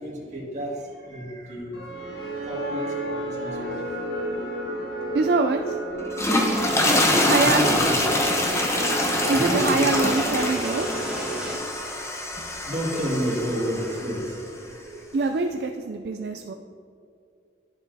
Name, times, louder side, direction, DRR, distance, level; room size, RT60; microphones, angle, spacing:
voice 1, 0.0-4.0 4.3-4.5 6.7-8.0 9.0-10.0 11.6-11.8 12.0-15.2, equal, 40° right, -4 dB, 1.9 m, -32 dB
sound 1, 1.7-11.9, right 1 dB, 60° left, 1.5 m, -32 dB
voice 2, 5.1-5.8 7.2-7.7 9.3-10.9 15.1-16.5, right 3 dB, 60° right, 5 dB, 0.3 m, -24 dB
sound 2, 6.0-14.3, left 1 dB, 15° left, 0.8 m, -25 dB
sound 3, 6.3-11.6, right 1 dB, 5° right, 1.5 m, -34 dB
11.0 x 7.0 x 2.7 m, 2.5 s
head